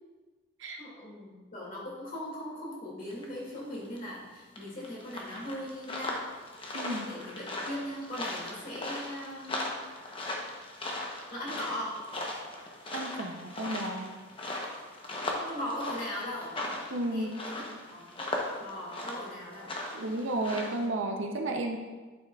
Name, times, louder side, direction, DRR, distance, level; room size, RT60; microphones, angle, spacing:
voice 1, 0.6-6.3 7.0-9.7 11.3-12.0 15.3-16.6 17.1-17.6 17.9-18.1 18.6-19.7, left 1 dB, 40° left, -5 dB, 2.3 m, -39 dB
sound 1, 3.1-3.4 3.7-4.0 4.6-20.9, left 2 dB, 25° left, 0.8 m, -38 dB
voice 2, 6.7-7.1 12.9-14.2 16.9-17.3 19.9-21.8, right 1 dB, 65° right, 3 dB, 0.6 m, -33 dB
10.5 x 5.7 x 2.3 m, 1.3 s
head